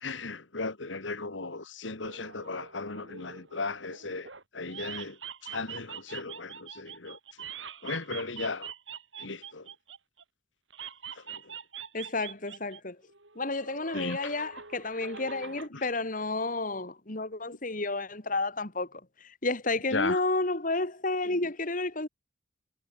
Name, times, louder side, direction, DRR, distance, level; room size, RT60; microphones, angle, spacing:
voice 1, 0.0-7.2 7.8-8.7 9.2-9.7 11.2-11.4 13.9-14.3 15.7-15.9 19.9-20.2, left 3 dB, 80° left, 2.0 m, -36 dB
sound 1, 2.0-4.4 4.7-10.2 10.7-12.8 13.1-15.7, right 7 dB, 80° right, 7.2 m, -44 dB
voice 2, 11.9-13.0 13.4-22.1, left 2 dB, 45° left, 2.6 m, -31 dB
head